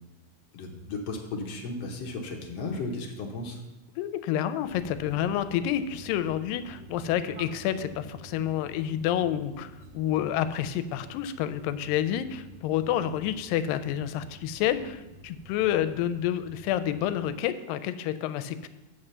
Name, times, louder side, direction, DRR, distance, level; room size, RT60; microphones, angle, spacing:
voice 1, 0.5-3.6, left 3 dB, 65° left, 1 dB, 1.6 m, -35 dB
voice 2, 4.0-18.7, left 11 dB, 85° left, 12 dB, 2.2 m, -29 dB
sound 1, 4.6-17.3, right 3 dB, 85° right, 1.5 m, -49 dB
7.2 x 5.5 x 6.6 m, 0.99 s
omnidirectional pair, 4.0 m